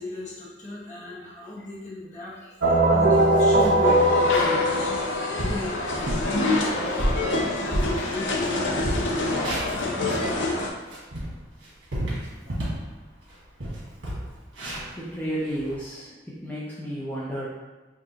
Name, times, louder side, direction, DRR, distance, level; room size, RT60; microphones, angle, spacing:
voice 1, 0.0-7.0 7.6-9.5 12.2-12.5, left 2 dB, 40° left, -6 dB, 1.1 m, -36 dB
sound 1, 2.6-5.5, right 1 dB, 65° right, 0.6 m, -20 dB
sound 2, 3.1-3.9 4.3-4.5 5.0-5.1 5.4-5.7 6.1-6.3 6.8-8.5 8.7-10.3 10.7-12.9 13.2-13.3 13.6-15.7, equal, 80° right, 1.4 m, -30 dB
sound 3, 3.8-10.7, left 2 dB, 75° left, 0.6 m, -27 dB
voice 2, 15.0-16.1 16.4-17.5, equal, 10° left, -8 dB, 0.5 m, -32 dB
4.8 x 2.5 x 2.8 m, 1.2 s
head